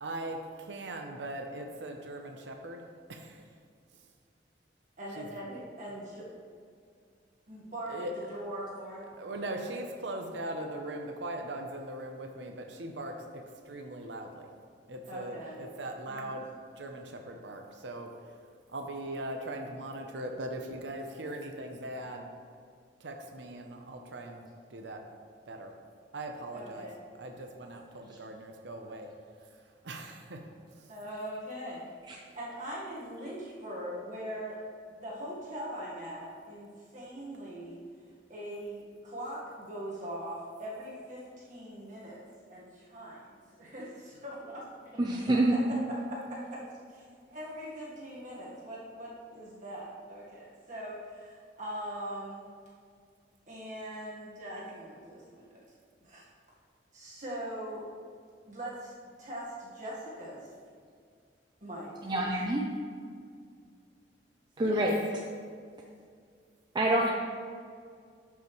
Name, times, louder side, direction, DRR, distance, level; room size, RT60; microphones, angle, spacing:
voice 1, 0.0-3.5 3.9-4.0 5.2-5.3 7.9-8.1 9.2-14.5 14.9-16.5 16.8-18.1 18.7-22.3 23.0-24.4 24.7-25.0 25.5-25.7 26.1-26.9 27.2-29.1 29.8-30.4 30.7-30.9 64.6-64.9, right 1 dB, 90° right, 3 dB, 0.7 m, -40 dB
voice 2, 5.0-6.2 7.5-7.9 8.3-9.0 15.1-15.6 16.1-16.4 26.5-26.9 30.9-31.9 32.3-34.6 34.9-37.8 38.3-44.6 45.2-45.8 46.3-46.6 46.9-52.4 53.5-55.5 56.0-56.2 56.9-57.9 58.5-58.9 59.2-60.5 61.6-62.3, right 1 dB, 45° right, -6 dB, 1.5 m, -41 dB
voice 3, 45.0-45.5 62.1-62.6 64.6-65.0 66.7-67.1, right 1 dB, 25° right, -1 dB, 0.5 m, -26 dB
11.5 x 5.5 x 3.1 m, 2.1 s
head